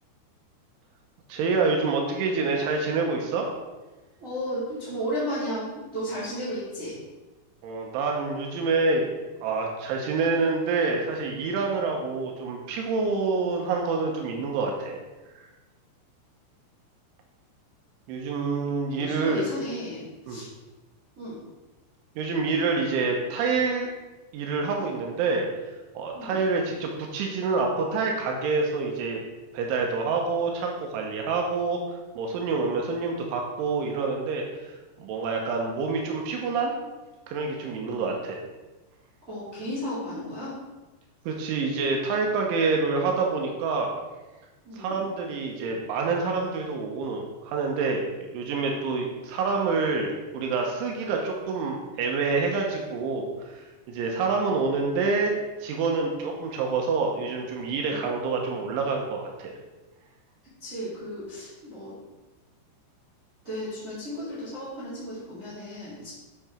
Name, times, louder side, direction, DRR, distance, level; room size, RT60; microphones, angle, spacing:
voice 1, 1.3-3.5 7.6-9.1 9.4-15.0 18.1-19.4 20.3-20.4 22.2-23.9 24.3-25.5 26.0-29.2 29.5-31.8 32.2-34.4 35.0-36.8 37.3-38.4 41.3-43.9 44.8-48.0 48.3-55.3 55.6-59.5, right 4 dB, 85° right, 1 dB, 3.4 m, -27 dB
voice 2, 4.2-7.0 19.0-20.0 20.3-20.5 21.2-21.4 26.1-26.4 37.8-38.0 39.3-40.5 44.6-45.0 57.8-58.0 60.6-62.0 63.4-66.1, equal, 20° right, -9 dB, 2.3 m, -34 dB
9.4 x 6.9 x 4.4 m, 1.2 s
omnidirectional pair, 5.5 m